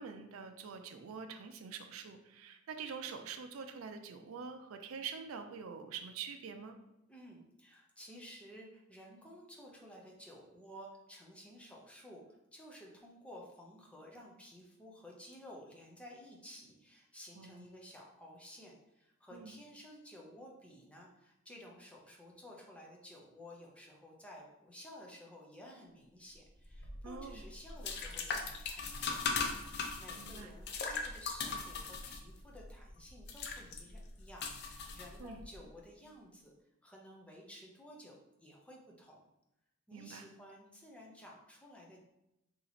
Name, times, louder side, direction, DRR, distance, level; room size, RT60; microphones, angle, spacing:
voice 1, 0.0-6.8 17.4-17.7 19.3-19.6 27.0-27.4 30.2-30.5 35.2-35.4 39.9-40.3, right 6 dB, 75° right, 7 dB, 0.4 m, -45 dB
voice 2, 7.1-12.2 12.5-29.2 29.9-36.5 36.8-39.2 39.9-42.0, equal, 5° left, -2 dB, 0.6 m, -54 dB
sound 1, 26.7-35.6, left 4 dB, 55° left, 0.4 m, -40 dB
2.9 x 2.8 x 4.0 m, 0.88 s
head